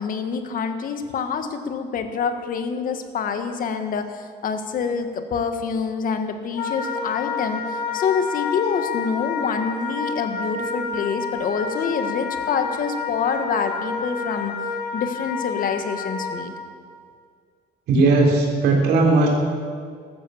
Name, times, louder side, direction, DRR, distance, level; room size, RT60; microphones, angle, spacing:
voice 1, 0.0-14.6 14.9-16.5, left 6 dB, 55° left, 8 dB, 1.7 m, -26 dB
Wind instrument woodwind instrument, 6.5-16.4, left 5 dB, 75° left, 5.4 m, -29 dB
voice 2, 17.9-19.3, right 3 dB, 80° right, -1 dB, 4.0 m, -17 dB
14.5 x 12.5 x 7.2 m, 2.1 s
cardioid pair, 110°, 17 cm